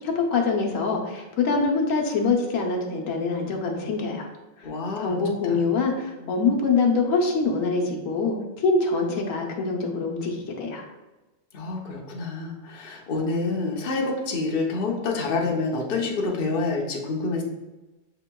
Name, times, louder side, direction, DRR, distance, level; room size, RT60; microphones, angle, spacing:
voice 1, 0.0-4.3 4.6-4.7 5.0-10.9, left 4 dB, 85° left, 1 dB, 1.1 m, -24 dB
voice 2, 4.6-5.2 5.5-5.6 6.2-6.4 11.5-17.4, left 3 dB, 50° left, 0 dB, 0.8 m, -27 dB
6.9 x 2.9 x 2.2 m, 1.1 s
omnidirectional pair, 1.4 m